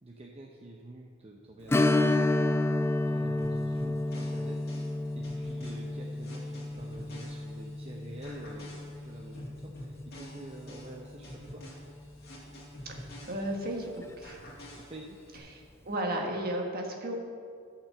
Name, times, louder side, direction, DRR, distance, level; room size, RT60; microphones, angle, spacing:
voice 1, 0.0-2.5 3.1-4.9 5.1-11.7 14.7-15.3, right 1 dB, 30° right, 0 dB, 0.7 m, -47 dB
Strum, 1.7-10.9 11.2-11.3 13.9-14.0 14.5-14.6, left 2 dB, 10° left, 0.3 m, -31 dB
sound 1, 3.4-7.8 8.2-13.8 14.2-15.4, equal, 50° left, 2.4 m, -48 dB
voice 2, 12.8-14.4 15.5-17.2, right 1 dB, 45° right, 1 dB, 1.5 m, -34 dB
12.0 x 5.9 x 6.9 m, 2.2 s
head